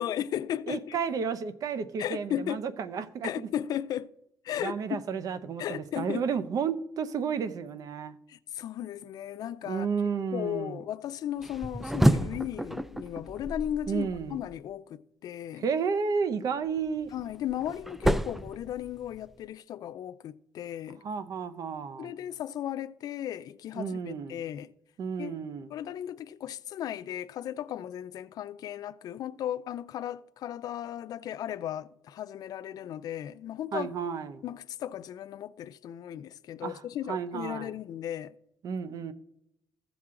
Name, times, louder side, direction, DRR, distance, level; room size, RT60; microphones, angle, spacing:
voice 1, 0.0-1.0 2.0-2.6 3.2-4.1 4.4-5.0 5.6-6.2 8.3-9.9 10.3-15.6 17.1-21.0 22.0-24.7 25.2-25.4 25.7-33.9 34.4-38.3, left 11 dB, 65° left, 0.4 m, -36 dB
voice 2, 0.7-3.5 4.6-8.2 9.7-10.8 13.9-14.4 15.6-17.1 21.0-22.1 23.8-24.4 25.0-25.7 33.7-34.4 36.6-37.7 38.6-39.1, right 6 dB, 60° right, 0.7 m, -32 dB
sound 1, 11.4-14.6 16.8-19.3, right 1 dB, 5° right, 0.3 m, -29 dB
15.0 x 6.0 x 3.7 m
cardioid pair, 115°, 7 cm